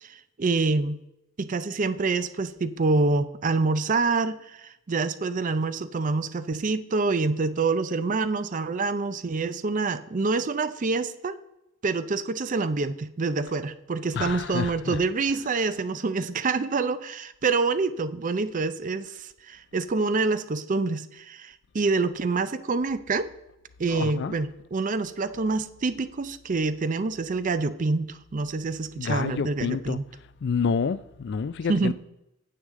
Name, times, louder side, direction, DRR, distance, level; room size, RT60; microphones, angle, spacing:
voice 1, 0.0-1.0 1.4-11.4 11.8-23.3 23.8-30.0 31.7-31.9, right 3 dB, 35° right, 0.4 m, -26 dB
voice 2, 14.2-15.0 23.9-24.4 29.0-30.0 30.4-31.9, left 5 dB, 55° left, 0.3 m, -28 dB
9.5 x 7.6 x 3.6 m
head